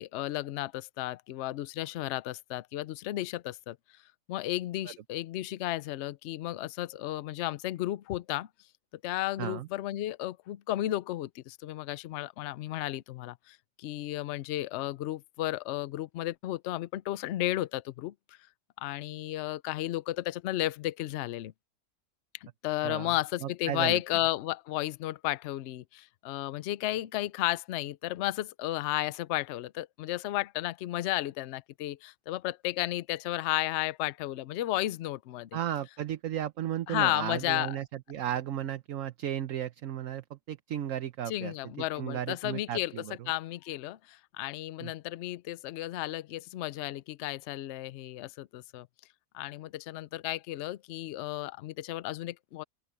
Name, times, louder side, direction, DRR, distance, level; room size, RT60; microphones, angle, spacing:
voice 1, 0.0-3.8 4.3-8.5 9.0-18.4 18.8-21.5 22.4-35.5 36.9-37.8 41.3-42.9 43.3-48.9 49.3-52.6, left 16 dB, 65° left, 0.7 m, -33 dB
voice 2, 23.4-24.0 35.5-43.3 44.8-44.9, right 11 dB, 60° right, 1.1 m, -35 dB
open air
omnidirectional pair, 1.6 m